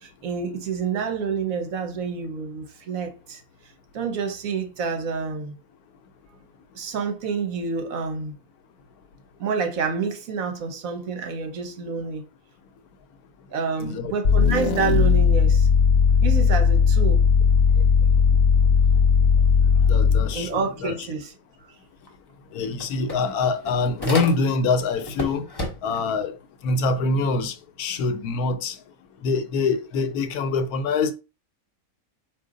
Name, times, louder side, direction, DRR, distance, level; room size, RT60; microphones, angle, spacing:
voice 1, 0.0-3.4 3.9-5.5 6.7-8.3 9.4-12.2 13.5-15.7 16.2-17.3 20.3-21.3 21.6-21.7, right 5 dB, 70° right, 1.2 m, -28 dB
voice 2, 13.8-14.1 19.9-20.9 22.5-25.4 25.8-26.3 26.6-28.8 29.2-31.1, left 4 dB, 90° left, 1.1 m, -24 dB
sound 1, 14.2-20.4, left 6 dB, 65° left, 0.6 m, -17 dB
sound 2, 22.1-22.2 22.5-24.7 25.0-26.1, left 1 dB, 20° left, 0.8 m, -32 dB
4.5 x 2.6 x 3.7 m
omnidirectional pair, 1.5 m